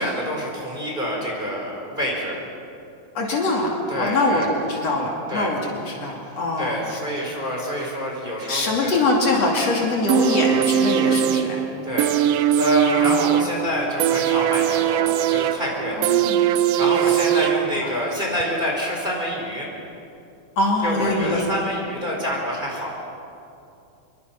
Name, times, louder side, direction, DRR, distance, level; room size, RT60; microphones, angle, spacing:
voice 1, 0.0-2.4 3.9-4.5 5.3-5.5 6.6-9.0 11.8-12.1 12.6-16.0 16.8-19.7 20.8-23.0, equal, 15° right, -2 dB, 4.6 m, -27 dB
voice 2, 3.2-3.7 4.0-7.0 8.5-11.6 12.9-13.2 16.0-16.5 17.1-17.2 17.8-17.9 20.6-21.5, left 2 dB, 55° left, -1 dB, 3.6 m, -23 dB
sound 1, 10.1-18.1 18.4-18.5, right 10 dB, 75° right, 1.5 m, -21 dB
26.0 x 23.0 x 5.9 m, 2.6 s
omnidirectional pair, 3.5 m